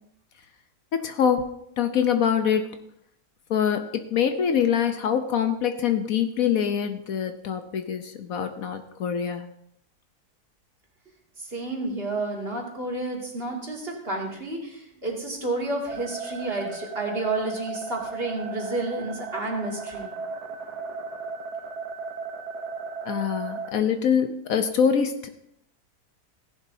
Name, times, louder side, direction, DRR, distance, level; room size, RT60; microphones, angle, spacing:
voice 1, 0.9-2.8 3.5-9.5 23.0-25.3, left 8 dB, 70° left, 8 dB, 1.2 m, -24 dB
voice 2, 11.4-20.1, right 2 dB, 40° right, -1 dB, 2.5 m, -30 dB
sound 1, 15.9-23.7, right 5 dB, 80° right, 1.4 m, -35 dB
16.5 x 11.0 x 2.7 m, 0.75 s
omnidirectional pair, 1.6 m